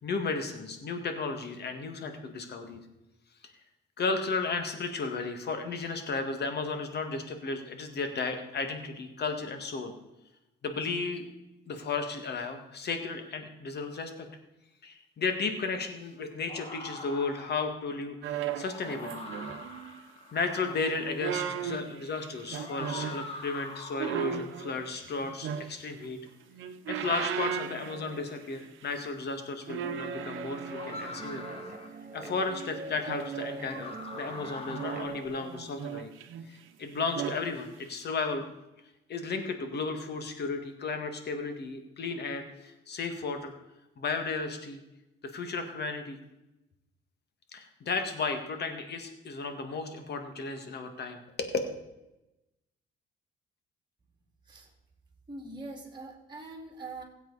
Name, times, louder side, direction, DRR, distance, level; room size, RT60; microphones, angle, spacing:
voice 1, 0.0-2.8 4.0-9.9 10.6-11.3 11.7-14.3 14.8-19.2 20.3-26.2 26.9-31.4 32.1-36.1 36.5-38.4 39.1-43.5 44.0-44.8 45.2-46.2 47.5-51.5, left 4 dB, 55° left, 6 dB, 1.9 m, -34 dB
sound 1, 16.5-17.7 18.4-21.2 22.5-24.4 25.1-25.6 26.4-26.5 27.0-27.6 29.1-29.2 30.7-32.0 33.6-35.1, left 2 dB, 30° left, 1.8 m, -44 dB
sound 2, 18.2-20.0 21.0-23.3 24.0-26.1 26.5-28.6 28.8-29.1 29.7-31.7 32.6-33.9 34.7-36.6 37.0-37.5 37.9-38.0, right 8 dB, 80° right, 0.9 m, -37 dB
Guitar, 29.8-35.3, right 2 dB, 40° right, 2.2 m, -43 dB
voice 2, 55.3-57.0, right 2 dB, 25° right, 0 dB, 2.5 m, -43 dB
16.0 x 8.0 x 4.1 m, 0.94 s
cardioid pair, 90°, 20 cm